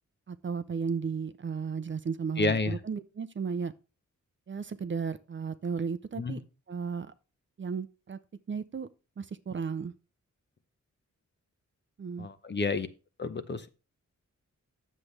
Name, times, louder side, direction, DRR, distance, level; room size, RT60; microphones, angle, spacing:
voice 1, 0.3-3.7 4.5-6.4 6.7-7.1 7.6-8.2 8.5-8.9 9.2-9.9 12.0-12.3, right 5 dB, 40° right, 0.6 m, -34 dB
voice 2, 2.4-2.8 6.2-6.4 12.2-12.9 13.2-13.7, left 3 dB, 35° left, 0.8 m, -30 dB
9.9 x 7.4 x 3.2 m
wide cardioid pair, 160°, 30 cm